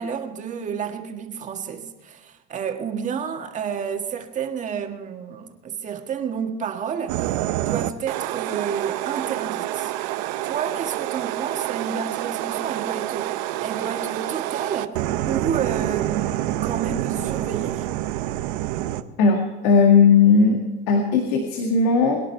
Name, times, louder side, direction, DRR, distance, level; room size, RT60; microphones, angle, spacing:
voice 1, 0.0-7.2 7.6-9.9 10.4-15.0 15.3-17.9, right 7 dB, 35° right, 1.8 m, -30 dB
sound 1, 7.1-19.0, right 14 dB, 85° right, 0.8 m, -27 dB
voice 2, 19.2-20.6 20.9-22.2, left 5 dB, 90° left, 1.9 m, -17 dB
23.0 x 10.5 x 4.6 m
supercardioid pair, 125°, 21 cm